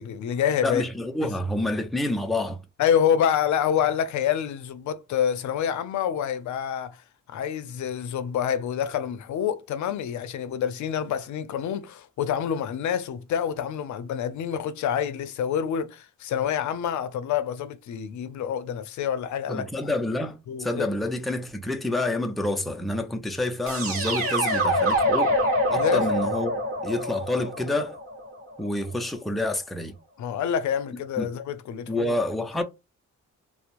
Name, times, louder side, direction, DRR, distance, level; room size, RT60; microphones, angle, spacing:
voice 1, 0.0-0.8 2.8-7.0 7.3-19.7 20.5-20.9 25.8-26.1 30.2-32.2 32.6-32.7, left 8 dB, 65° left, 0.5 m, -27 dB
voice 2, 0.6-2.6 19.5-25.3 25.7-28.0 28.6-29.9 31.2-31.3 31.9-32.6, left 1 dB, ahead, 0.3 m, -28 dB
sound 1, 23.7-28.6, equal, 45° right, 1.1 m, -25 dB
2.9 x 2.0 x 2.5 m
cardioid pair, 115°, 31 cm